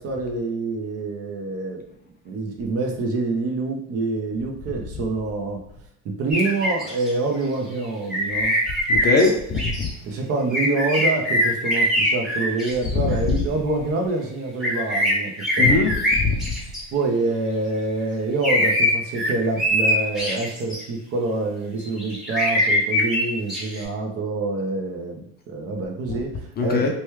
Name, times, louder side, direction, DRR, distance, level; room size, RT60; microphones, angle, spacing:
voice 1, 0.0-1.8 2.2-5.6 6.0-8.5 10.0-15.9 16.9-26.9, right 3 dB, 45° right, 0.7 m, -26 dB
sound 1, 6.3-7.1 8.1-9.3 9.6-9.9 10.5-13.4 14.6-16.8 18.4-20.8 21.8-23.8, left 1 dB, ahead, 1.0 m, -22 dB
voice 2, 8.9-9.9 15.6-16.4 26.6-26.9, left 4 dB, 30° left, 0.4 m, -21 dB
3.0 x 2.3 x 3.1 m
supercardioid pair, 105°, 34 cm